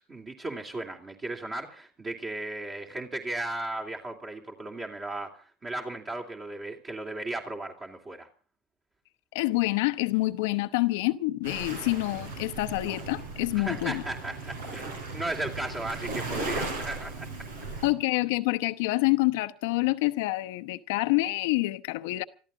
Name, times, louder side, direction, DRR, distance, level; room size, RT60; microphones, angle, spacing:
voice 1, 0.0-8.3 13.5-17.3, right 2 dB, 30° right, 2.8 m, -36 dB
voice 2, 9.3-14.0 17.8-22.2, left 20 dB, 75° left, 0.9 m, -27 dB
Waves surf, 11.4-17.9, right 3 dB, 85° right, 4.9 m, -37 dB
25.5 x 14.0 x 3.8 m
hypercardioid pair, 85°, 0 cm